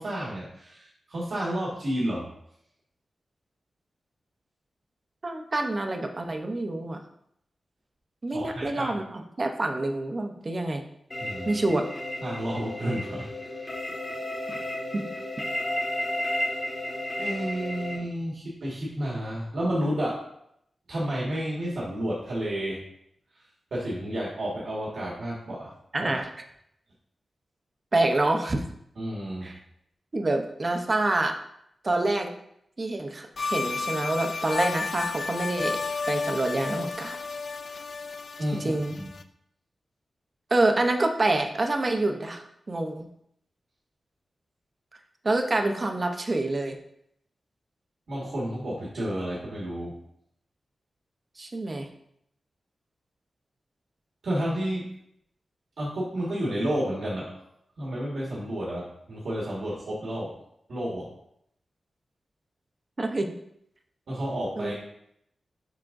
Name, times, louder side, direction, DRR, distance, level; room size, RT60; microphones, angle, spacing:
voice 1, 0.0-2.3 8.3-9.0 11.2-11.6 12.2-13.3 17.2-20.2 20.9-22.8 23.7-25.7 26.0-26.1 29.0-29.5 38.4-39.1 48.1-50.0 54.2-54.8 55.8-57.3 57.8-60.3 60.7-61.1 64.1-64.8, right 1 dB, 70° right, -6 dB, 1.7 m, -31 dB
voice 2, 5.2-7.0 8.2-10.8 11.5-11.9 14.9-15.1 25.9-26.3 27.9-28.6 29.4-29.6 30.1-31.3 31.8-32.3 32.8-35.8 36.1-37.2 38.6-39.0 40.5-43.1 45.2-46.8 51.4-51.9 63.0-63.3 64.6-64.8, right 2 dB, 30° right, 4 dB, 0.7 m, -27 dB
sound 1, 11.1-18.0, left 1 dB, 30° left, 1.7 m, -33 dB
sound 2, 33.4-39.2, left 4 dB, 55° left, 0.3 m, -32 dB
10.5 x 3.6 x 2.6 m, 0.74 s
wide cardioid pair, 140°, 0 cm